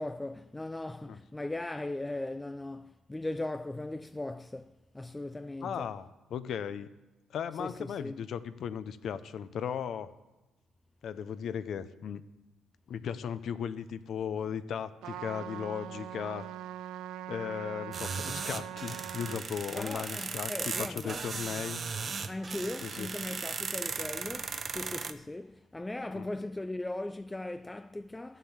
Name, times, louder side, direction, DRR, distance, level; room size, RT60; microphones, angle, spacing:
voice 1, 0.0-5.9 7.6-8.3 19.7-21.2 22.3-28.4, left 2 dB, 15° left, 0.3 m, -38 dB
voice 2, 5.6-6.1 6.3-6.9 7.3-10.1 11.0-12.2 12.9-16.5 17.3-20.5 20.8-21.8 22.8-23.1 26.1-26.3, left 8 dB, 65° left, 0.7 m, -36 dB
Trumpet, 15.0-19.4, right 11 dB, 85° right, 0.6 m, -42 dB
sound 1, 17.9-25.1, right 5 dB, 40° right, 0.7 m, -37 dB
11.5 x 7.5 x 7.2 m
cardioid pair, 90°, 0 cm